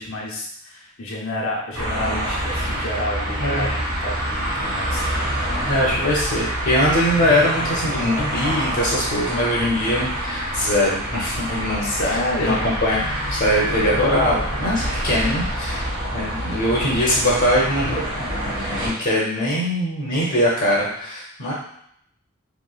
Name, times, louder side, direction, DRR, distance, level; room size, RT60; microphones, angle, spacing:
voice 1, 0.0-5.0 11.8-12.7, left 1 dB, 90° left, -2 dB, 0.8 m, -29 dB
sound 1, 1.7-18.9, equal, 75° right, 1.3 m, -26 dB
voice 2, 3.4-3.7 5.7-15.9 16.1-18.0 18.5-21.5, equal, 50° left, -5 dB, 0.7 m, -22 dB
3.0 x 3.0 x 2.3 m, 0.70 s
head